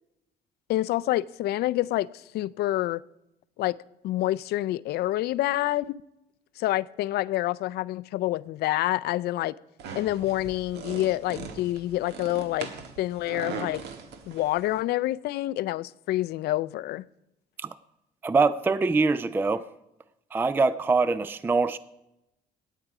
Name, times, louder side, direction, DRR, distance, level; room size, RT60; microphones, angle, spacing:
voice 1, 0.7-3.0 3.6-3.8 4.0-6.0 6.6-9.5 9.9-12.7 13.0-13.8 14.3-17.0, left 15 dB, 70° left, 0.4 m, -27 dB
sound 1, 9.8-14.8, right 5 dB, 85° right, 1.5 m, -40 dB
voice 2, 18.2-19.6 20.3-21.8, right 4 dB, 10° right, 0.3 m, -23 dB
16.0 x 9.2 x 4.8 m
cardioid pair, 110°, 17 cm